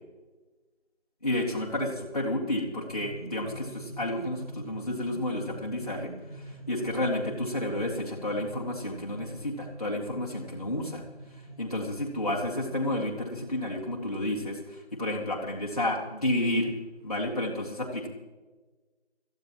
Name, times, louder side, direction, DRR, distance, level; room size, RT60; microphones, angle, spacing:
voice 1, 1.2-11.0 11.6-16.7 17.0-18.1, left 1 dB, 35° left, -4 dB, 2.1 m, -31 dB
sound 1, 2.9-14.4, right 2 dB, 5° left, 3.2 m, -45 dB
23.0 x 14.5 x 3.0 m, 1.2 s
figure-of-eight pair, 175°, 33 cm